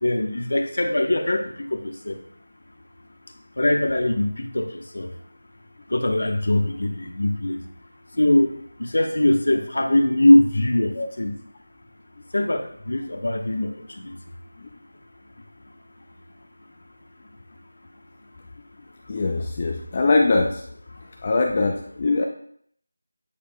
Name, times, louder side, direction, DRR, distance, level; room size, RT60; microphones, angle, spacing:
voice 1, 0.0-1.4 1.7-2.1 3.6-4.3 4.5-4.7 4.9-5.1 5.9-7.6 8.2-8.5 8.9-10.9 11.2-11.3 12.3-13.7 14.0-14.1, left 1 dB, 75° left, 5 dB, 1.0 m, -21 dB
voice 2, 19.1-20.6 21.2-22.3, left 3 dB, 30° left, 2 dB, 0.4 m, -22 dB
8.4 x 5.0 x 2.2 m, 0.63 s
figure-of-eight pair, 175°, 0 cm